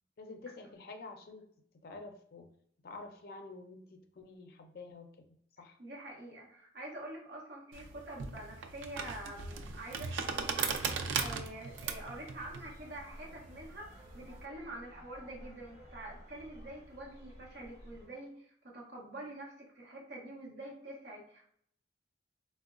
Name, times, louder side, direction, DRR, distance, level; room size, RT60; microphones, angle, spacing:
voice 1, 0.2-1.5 1.7-2.5 2.8-5.3 5.6-5.8, left 3 dB, 50° left, 5 dB, 0.4 m, -49 dB
voice 2, 5.8-21.5, right 1 dB, 60° right, -3 dB, 0.7 m, -46 dB
sound 1, 7.7-14.4, right 5 dB, 90° right, 0.3 m, -38 dB
sound 2, 9.5-18.1, equal, 15° right, 1.2 m, -54 dB
3.7 x 2.0 x 2.4 m, 0.66 s
head